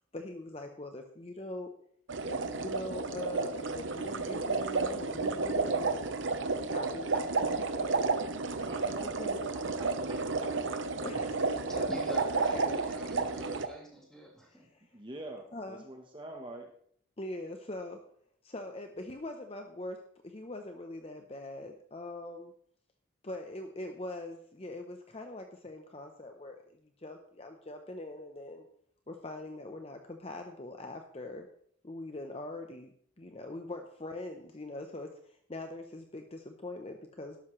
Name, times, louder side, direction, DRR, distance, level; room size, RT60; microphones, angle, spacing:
voice 1, 0.1-1.7 2.2-6.2 6.7-8.0 8.6-9.4 11.0-12.8 14.5-14.9 15.5-15.8 17.2-18.0 18.4-22.5 23.2-28.7 29.1-31.5 31.8-32.9 33.2-37.4, left 2 dB, 30° left, 0.8 m, -42 dB
sound 1, 2.1-13.7, right 3 dB, 70° right, 0.9 m, -32 dB
voice 2, 8.0-9.2 9.5-10.8 14.9-16.7, right 1 dB, 25° right, 1.1 m, -47 dB
voice 3, 11.7-14.7, right 1 dB, 5° left, 3.2 m, -45 dB
12.5 x 12.0 x 3.2 m
head